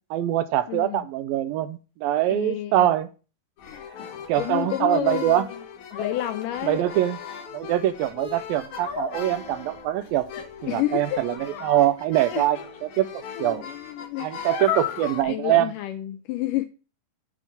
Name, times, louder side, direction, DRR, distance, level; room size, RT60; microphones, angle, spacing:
voice 1, 0.1-3.1 4.3-5.5 6.6-7.2 7.5-10.3 10.6-13.6 14.2-15.7, right 13 dB, 85° right, 2.4 m, -23 dB
voice 2, 0.7-1.0 2.3-2.9 3.6-5.5 5.9-6.9 10.7-11.2 12.3-12.5 13.4-14.4 15.2-16.7, left 14 dB, 85° left, 1.9 m, -30 dB
sound 1, 3.6-15.2, left 7 dB, 60° left, 2.6 m, -36 dB
7.9 x 4.8 x 7.1 m
omnidirectional pair, 4.2 m